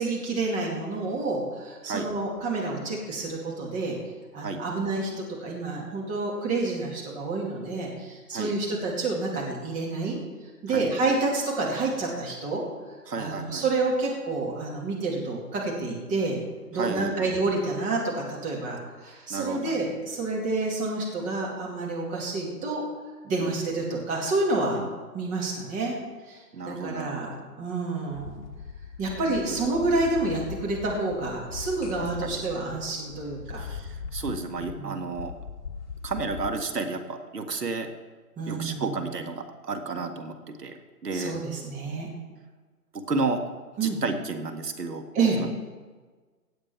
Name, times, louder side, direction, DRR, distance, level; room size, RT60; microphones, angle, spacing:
voice 1, 0.0-4.0 4.3-10.2 10.6-12.6 13.2-16.4 16.7-22.8 23.2-24.8 25.1-26.0 26.3-26.4 26.7-28.4 29.0-33.6 34.6-35.1 38.4-39.0 41.1-42.1 43.8-44.0 45.1-45.4, right 3 dB, 15° right, -3 dB, 2.6 m, -29 dB
voice 2, 13.1-13.6 16.7-17.3 19.3-19.9 23.4-23.5 24.8-24.9 26.5-27.4 29.5-29.6 32.2-32.4 33.6-35.3 36.0-37.9 38.5-40.8 41.0-41.3 42.9-43.4 43.8-45.0 45.4-45.5, right 3 dB, 80° right, 5 dB, 1.9 m, -32 dB
sound 1, 28.1-36.5, left 5 dB, 45° left, 1.7 m, -40 dB
16.5 x 7.9 x 4.7 m, 1.4 s
figure-of-eight pair, 140°, 47 cm